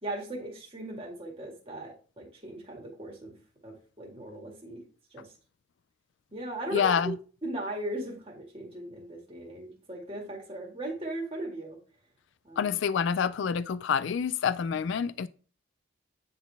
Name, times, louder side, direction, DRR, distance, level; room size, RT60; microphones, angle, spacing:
voice 1, 0.0-3.4 3.6-4.8 5.1-5.3 6.3-7.1 7.4-11.8 12.4-12.7, right 1 dB, 25° right, 1.9 m, -38 dB
voice 2, 6.7-7.1 12.6-15.3, left 7 dB, 65° left, 0.3 m, -27 dB
9.4 x 4.0 x 3.4 m
head